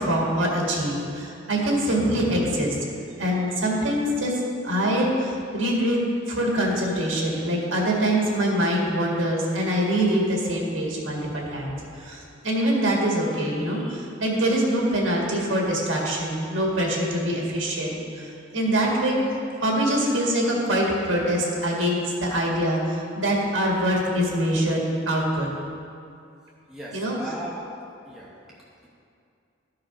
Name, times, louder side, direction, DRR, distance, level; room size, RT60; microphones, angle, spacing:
voice 1, 0.0-2.8 3.2-4.3 4.6-6.0 6.3-19.2 19.6-25.5 26.9-27.2, right 1 dB, 75° right, -2 dB, 1.9 m, -24 dB
voice 2, 26.7-27.8 28.0-28.4, right 1 dB, ahead, -7 dB, 0.9 m, -37 dB
12.5 x 4.8 x 5.0 m, 2.5 s
head